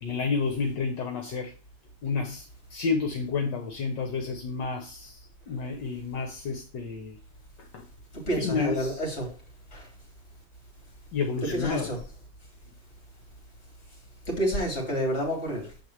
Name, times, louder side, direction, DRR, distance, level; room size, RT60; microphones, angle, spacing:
voice 1, 0.0-1.5 2.0-2.4 2.7-5.2 5.5-7.2 8.4-8.9 11.1-11.9, left 5 dB, 65° left, 1.5 m, -30 dB
voice 2, 8.3-9.3 9.7-9.9 11.4-12.0 14.3-15.7, right 1 dB, 35° left, 3.1 m, -29 dB
7.3 x 4.7 x 4.6 m
omnidirectional pair, 2.2 m